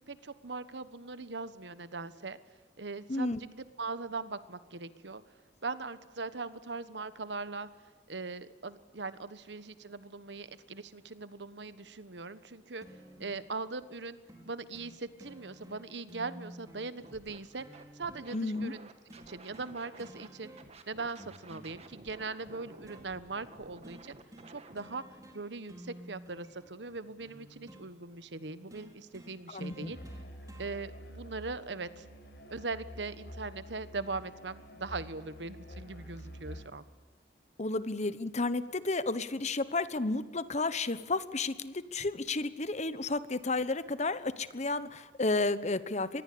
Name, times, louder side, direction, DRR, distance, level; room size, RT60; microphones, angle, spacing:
voice 1, 0.0-2.4 2.8-5.2 5.6-7.7 8.1-12.9 13.2-14.2 14.4-17.7 17.9-18.9 19.3-20.5 20.9-24.2 24.5-25.0 25.3-30.0 30.6-32.1 32.5-36.8, right 3 dB, 85° right, 14 dB, 1.3 m, -40 dB
sound 1, 12.8-13.4 14.3-14.5 14.7-14.9 15.2-18.3 19.1-19.7 20.0-20.8 21.2-23.0 23.8-24.0 24.3-24.5 24.8-25.4 25.7-27.9 28.7-30.7 31.7-31.8, right 1 dB, 20° right, 4.5 m, -52 dB
Scratching (performance technique), 17.0-17.4 17.7-20.3 20.6-24.8, right 2 dB, 35° right, 2.1 m, -53 dB
voice 2, 18.3-18.7 29.5-29.9 37.6-46.2, left 3 dB, 40° left, 14 dB, 1.2 m, -32 dB
Musical instrument, 29.9-36.8, equal, 65° left, 5.7 m, -48 dB
25.5 x 21.0 x 8.6 m, 1.3 s
head